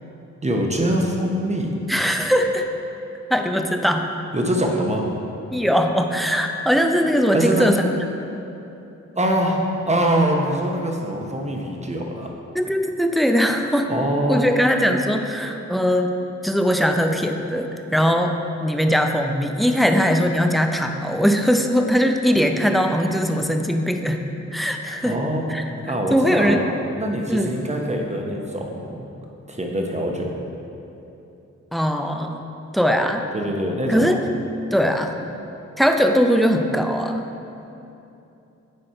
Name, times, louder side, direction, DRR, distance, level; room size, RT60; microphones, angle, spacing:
voice 1, 0.4-1.7 4.3-5.1 7.3-7.7 9.1-12.3 13.9-14.6 25.0-26.7 27.0-29.0 29.5-30.3 33.0-33.1 33.3-34.1, right 1 dB, 20° right, 1 dB, 1.0 m, -23 dB
voice 2, 1.9-2.7 3.3-4.1 5.5-7.8 12.5-13.9 14.3-16.1 16.4-18.3 18.6-24.2 24.5-25.2 25.5-25.7 26.1-26.6 27.3-27.5 31.7-32.4 32.7-33.3 33.9-34.2 34.7-35.2 35.8-37.3, equal, ahead, 4 dB, 0.5 m, -20 dB
6.5 x 4.2 x 4.4 m, 2.9 s
cardioid pair, 45°, 32 cm